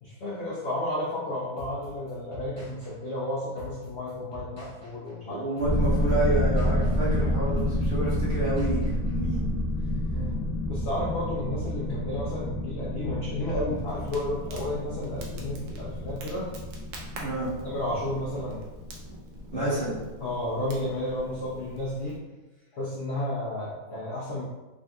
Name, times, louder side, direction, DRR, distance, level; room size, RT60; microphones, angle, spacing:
voice 1, 0.0-5.4 10.1-16.5 17.6-18.6 19.5-19.9 20.2-22.2 22.7-24.4, left 1 dB, 65° left, -7 dB, 0.6 m, -32 dB
sound 1, 1.6-9.4, right 2 dB, 20° left, 0.8 m, -46 dB
voice 2, 5.2-9.6 17.2-17.5 19.5-20.0, right 2 dB, 35° right, -11 dB, 1.3 m, -29 dB
sound 2, 5.6-20.1 20.4-20.5, left 1 dB, 45° left, 1.1 m, -29 dB
Crackle, 13.5-22.2, right 1 dB, 70° right, 0.7 m, -45 dB
3.6 x 2.6 x 2.2 m, 1.1 s
omnidirectional pair, 1.9 m